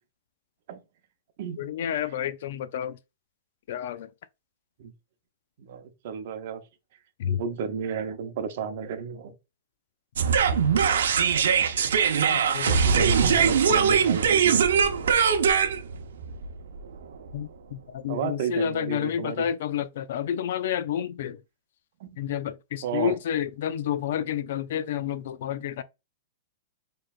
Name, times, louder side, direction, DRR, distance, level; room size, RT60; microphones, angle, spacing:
voice 1, 1.6-3.0 3.7-4.1 7.2-7.4 12.3-12.8 13.4-13.8 17.3-21.4 22.2-25.8, left 9 dB, 50° left, 0.3 m, -30 dB
voice 2, 5.6-6.6 7.3-9.3 12.8-14.7 18.1-19.4 22.0-22.2 22.8-23.2, right 6 dB, 40° right, 0.7 m, -32 dB
sound 1, 10.2-17.3, right 7 dB, 85° right, 0.7 m, -22 dB
4.5 x 3.1 x 2.4 m
supercardioid pair, 180°, 0 cm